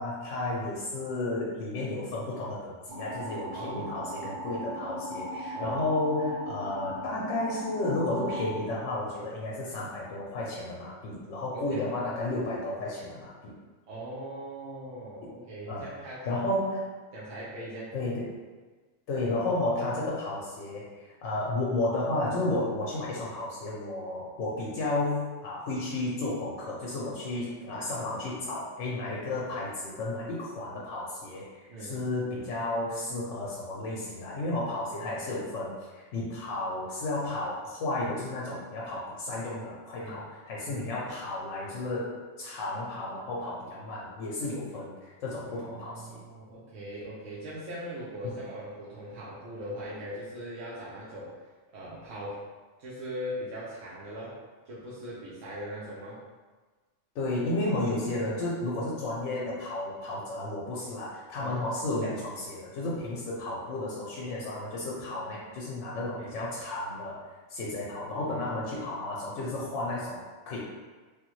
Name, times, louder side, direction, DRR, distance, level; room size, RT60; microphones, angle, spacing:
voice 1, 0.0-13.5 15.7-16.9 17.9-18.4 19.1-46.2 48.2-48.4 57.1-70.6, left 2 dB, 90° left, -4 dB, 1.0 m, -33 dB
sound 1, 2.9-8.5, equal, 25° right, 0.8 m, -38 dB
voice 2, 3.5-4.0 5.5-5.8 11.5-11.9 13.9-16.5 17.1-17.9 27.7-27.9 31.7-32.0 35.0-35.1 40.0-40.2 40.6-40.9 45.4-51.3 51.7-52.4 52.8-54.4 54.7-56.2 61.4-61.5 66.2-66.4 68.3-68.5, equal, 90° right, -8 dB, 1.1 m, -40 dB
3.3 x 2.2 x 3.0 m, 1.3 s
omnidirectional pair, 1.3 m